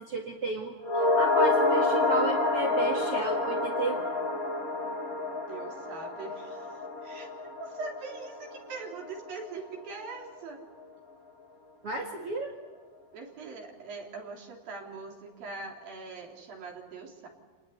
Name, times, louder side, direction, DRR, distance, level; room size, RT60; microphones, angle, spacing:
voice 1, 0.0-4.1 11.8-12.6, right 3 dB, 45° right, 1 dB, 2.5 m, -33 dB
sound 1, 0.8-9.3 9.6-9.7, left 2 dB, 25° left, 3.5 m, -28 dB
voice 2, 5.5-7.3 7.6-10.7 13.1-17.3, right 4 dB, 70° right, 1 dB, 5.1 m, -42 dB
29.5 x 19.5 x 8.4 m, 1.4 s
omnidirectional pair, 4.2 m